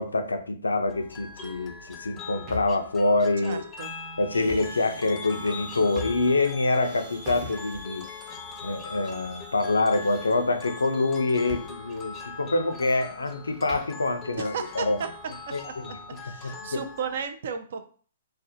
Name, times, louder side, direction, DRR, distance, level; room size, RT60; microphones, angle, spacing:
voice 1, 0.0-3.6 4.2-8.1 8.6-15.0 15.5-15.6 16.4-16.8, left 2 dB, 85° left, 8 dB, 0.4 m, -26 dB
sound 1, 0.9-17.3, left 5 dB, 20° left, 0.4 m, -42 dB
sound 2, 2.1-2.9 4.3-4.8 5.3-6.5 6.8-8.1 8.8-9.4 9.6-10.7 11.5-11.7 12.0-12.1 12.5-14.0, left 1 dB, 25° right, 0.7 m, -42 dB
voice 2, 3.4-3.9 14.3-15.1 16.2-17.9, right 6 dB, 60° right, 8 dB, 0.4 m, -34 dB
sound 3, 4.3-11.7, left 1 dB, 80° right, 1.0 m, -47 dB
2.4 x 2.0 x 2.6 m, 0.43 s
hypercardioid pair, 130°, 0 cm